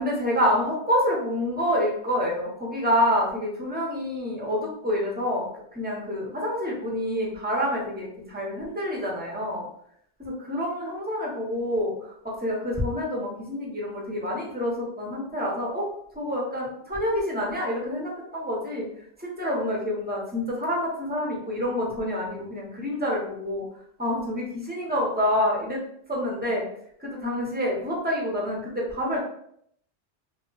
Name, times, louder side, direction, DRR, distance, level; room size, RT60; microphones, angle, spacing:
voice 1, 0.0-5.5 5.7-9.6 10.2-15.9 16.2-18.8 19.2-23.6 24.0-25.8 26.1-26.6 27.0-29.2, equal, 10° right, -3 dB, 0.6 m, -27 dB
2.3 x 2.2 x 3.8 m, 0.69 s
omnidirectional pair, 1.2 m